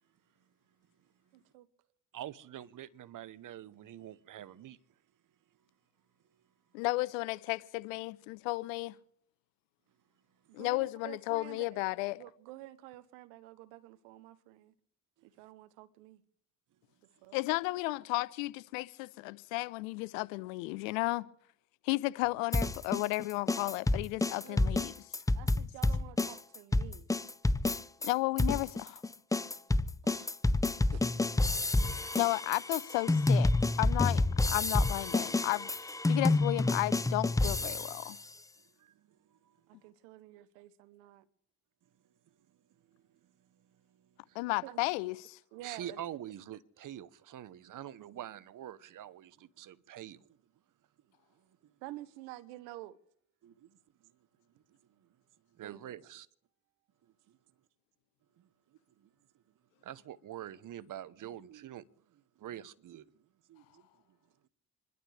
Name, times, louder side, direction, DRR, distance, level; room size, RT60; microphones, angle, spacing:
voice 1, 1.3-1.7 10.5-11.8 12.2-14.7 15.2-16.2 17.2-17.4 24.4-24.7 25.3-27.1 30.0-30.4 30.9-31.1 39.7-41.3 44.6-44.8 45.5-46.0 51.8-53.0 55.6-56.0, right 16 dB, 85° right, 0.8 m, -49 dB
voice 2, 2.1-4.8 15.2-15.3 24.4-24.5 31.9-32.4 38.8-39.9 42.9-43.0 43.5-44.4 45.6-50.4 51.6-51.7 53.4-53.8 54.0-54.1 54.5-55.1 55.5-56.3 57.3-57.4 58.4-58.5 59.0-59.1 59.8-63.2 63.5-63.9, right 11 dB, 55° right, 0.9 m, -47 dB
voice 3, 6.7-9.0 10.5-12.2 17.3-21.3 21.8-24.9 28.0-29.0 32.1-33.5 33.8-38.2 44.3-45.4, left 22 dB, 90° left, 0.6 m, -33 dB
sound 1, 22.5-28.1 28.4-38.1, left 2 dB, 10° left, 0.5 m, -29 dB
27.5 x 12.0 x 3.3 m
hypercardioid pair, 55°, 38 cm